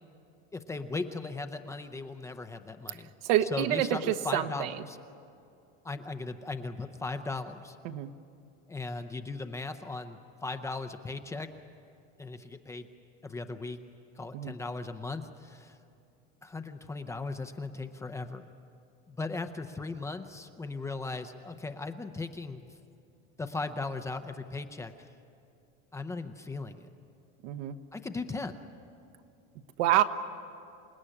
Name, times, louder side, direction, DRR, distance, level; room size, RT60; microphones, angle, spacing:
voice 1, 0.5-3.1 3.4-5.0 5.8-7.8 8.7-11.5 12.2-12.9 13.2-13.8 14.2-15.8 16.4-18.5 19.1-22.6 23.4-25.1 25.9-26.9 27.9-28.6, left 3 dB, 10° left, 8 dB, 0.6 m, -37 dB
voice 2, 3.2-4.7 7.8-8.1 14.3-14.5 27.4-27.7 29.8-30.0, right 12 dB, 70° right, 8 dB, 1.3 m, -27 dB
28.0 x 17.5 x 10.0 m, 2.6 s
cardioid pair, 165°, 30 cm